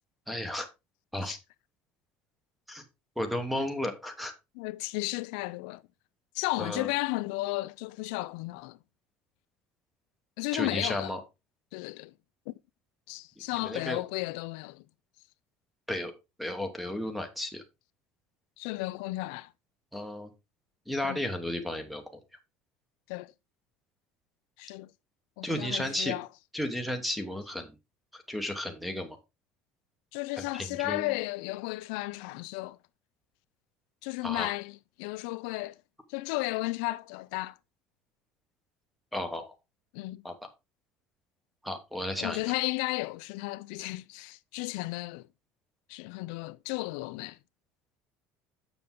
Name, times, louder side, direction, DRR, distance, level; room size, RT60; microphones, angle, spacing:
voice 1, 0.3-0.7 1.1-1.4 2.7-2.8 3.2-4.3 6.6-6.9 10.5-11.2 13.6-14.0 15.9-16.1 16.4-17.6 19.9-20.3 20.9-22.2 25.4-26.1 26.5-27.7 28.1-29.2 30.4-31.1 34.2-34.5 39.1-39.5 40.2-40.5 41.6-42.4, left 1 dB, ahead, 1.1 m, -33 dB
voice 2, 4.6-5.8 6.4-8.8 10.4-11.1 11.7-12.1 12.5-12.6 13.1-14.8 18.6-19.5 21.0-21.2 23.1-23.3 24.6-24.9 25.4-26.3 30.1-32.8 34.0-35.8 36.1-37.6 39.9-40.2 42.2-45.3 45.9-47.4, left 21 dB, 80° left, 0.4 m, -34 dB
6.9 x 6.8 x 3.7 m
cardioid pair, 175°, 5 cm